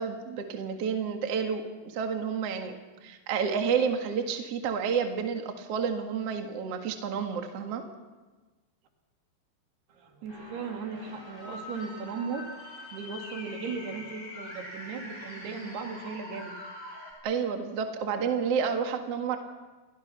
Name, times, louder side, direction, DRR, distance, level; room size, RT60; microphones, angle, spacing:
voice 1, 0.0-2.8 3.0-7.9 17.2-19.4, right 6 dB, 50° right, 4 dB, 2.3 m, -30 dB
voice 2, 9.9-12.5 12.9-16.6, right 5 dB, 80° right, 3 dB, 4.4 m, -37 dB
sound 1, 10.3-17.1, left 1 dB, 10° left, 6.2 m, -44 dB
29.0 x 22.5 x 5.8 m, 1.3 s
omnidirectional pair, 4.5 m